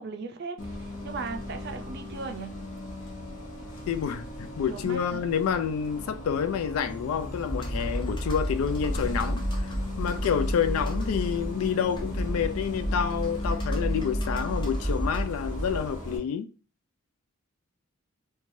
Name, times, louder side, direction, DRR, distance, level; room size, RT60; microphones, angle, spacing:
voice 1, 0.0-2.5 4.7-5.2, right 4 dB, 50° right, 0.4 m, -37 dB
Bus, 0.6-16.2, left 1 dB, 65° left, 0.8 m, -37 dB
voice 2, 3.9-9.4 10.0-16.5, left 7 dB, 85° left, 0.3 m, -28 dB
Computer keyboard, 7.4-16.0, equal, 20° left, 0.6 m, -31 dB
3.1 x 2.2 x 2.6 m
head